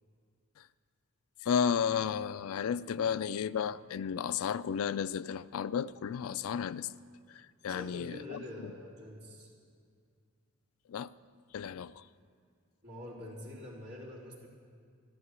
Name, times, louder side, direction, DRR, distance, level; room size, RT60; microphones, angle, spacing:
voice 1, 1.4-6.9 7.3-8.4 10.9-11.1 11.5-12.0, left 7 dB, 75° left, 0.4 m, -33 dB
voice 2, 7.6-9.5 12.8-14.5, left 1 dB, 50° right, 3.8 m, -45 dB
13.0 x 12.5 x 8.2 m
head